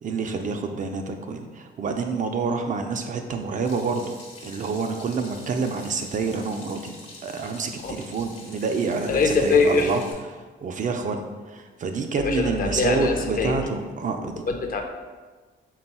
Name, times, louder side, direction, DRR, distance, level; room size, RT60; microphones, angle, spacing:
voice 1, 0.0-4.1 4.4-6.9 7.2-10.0 10.6-14.4, right 4 dB, 40° right, 5 dB, 0.4 m, -28 dB
Water tap faucet / Sink (filling or washing), 3.6-10.1, left 2 dB, 75° left, 1.1 m, -46 dB
voice 2, 9.1-9.9 12.2-13.6 14.0-14.1 14.5-14.8, left 4 dB, 45° left, 3 dB, 0.5 m, -23 dB
3.6 x 2.3 x 4.1 m, 1.4 s
cardioid pair, 90°, 20 cm